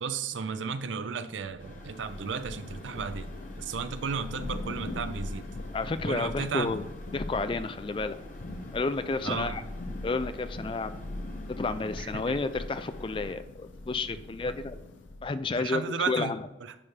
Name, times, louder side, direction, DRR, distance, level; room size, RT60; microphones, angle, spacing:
voice 1, 0.0-5.5 6.0-6.8 9.2-9.7 12.0-12.3 15.5-16.8, right 5 dB, 85° right, 11 dB, 0.5 m, -34 dB
Thunder / Rain, 1.4-15.5, left 2 dB, 90° left, 0.6 m, -41 dB
sound 1, 1.6-13.3, left 1 dB, 40° left, 1.0 m, -50 dB
voice 2, 5.7-6.8 7.1-8.2 8.7-9.6 10.0-11.0 11.6-14.8 15.2-16.4, left 3 dB, 25° left, 12 dB, 0.3 m, -31 dB
9.9 x 3.3 x 4.4 m, 0.95 s
head